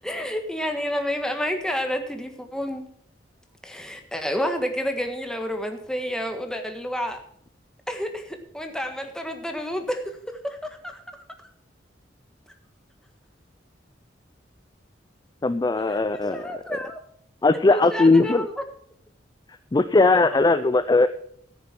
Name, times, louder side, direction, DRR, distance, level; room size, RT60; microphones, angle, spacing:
voice 1, 0.0-2.8 3.6-7.2 7.9-11.0 15.7-17.0 17.7-18.5, equal, 5° left, 5 dB, 1.5 m, -30 dB
voice 2, 15.4-16.8 17.4-18.5 19.7-21.1, left 3 dB, 20° left, 12 dB, 0.4 m, -19 dB
14.0 x 6.9 x 5.9 m, 0.63 s
head